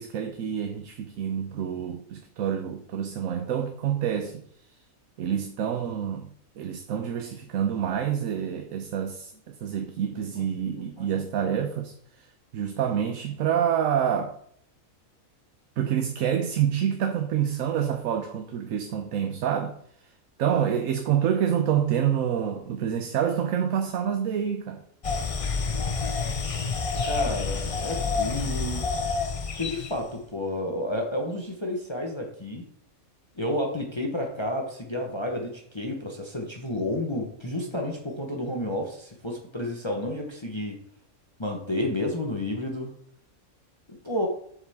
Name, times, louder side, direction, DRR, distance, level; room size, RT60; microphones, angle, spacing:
voice 1, 0.0-4.7 5.2-12.3 12.5-14.4 15.8-20.1 20.4-24.9, right 9 dB, 75° right, 1.1 m, -27 dB
sound 1, 25.0-30.0, left 4 dB, 45° left, 0.4 m, -28 dB
voice 2, 27.0-28.9 29.6-32.6 33.3-40.8 41.4-42.9 44.0-44.3, left 1 dB, 20° left, 1.0 m, -31 dB
7.2 x 7.1 x 3.5 m
omnidirectional pair, 1.4 m